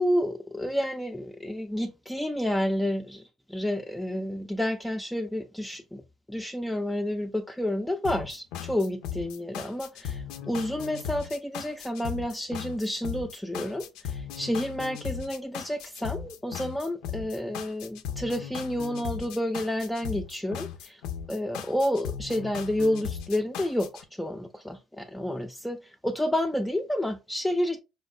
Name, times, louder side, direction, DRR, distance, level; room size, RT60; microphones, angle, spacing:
voice 1, 0.0-3.2 3.5-6.0 6.3-21.0 21.3-27.8, left 1 dB, 5° left, 0.3 m, -30 dB
sound 1, 8.0-24.0, left 8 dB, 75° left, 0.4 m, -37 dB
4.2 x 2.0 x 2.4 m
hypercardioid pair, 70°, 0 cm